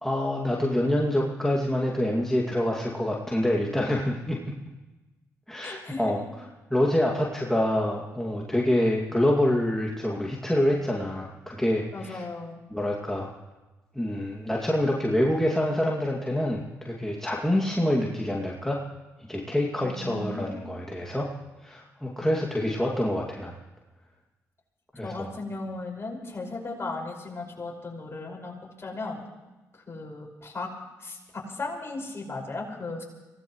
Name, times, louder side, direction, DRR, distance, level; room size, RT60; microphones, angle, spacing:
voice 1, 0.0-4.5 5.5-6.2 6.7-12.2 12.7-13.3 13.9-18.8 19.3-21.3 21.6-23.6 24.9-25.3, left 1 dB, 5° left, -2 dB, 2.4 m, -26 dB
voice 2, 5.6-6.2 11.9-12.6 19.8-20.6 25.0-28.5 28.8-29.2 29.9-30.7 31.0-33.0, left 3 dB, 35° left, -1 dB, 5.6 m, -36 dB
24.5 x 17.5 x 3.2 m, 1.1 s
hypercardioid pair, 45°, 7 cm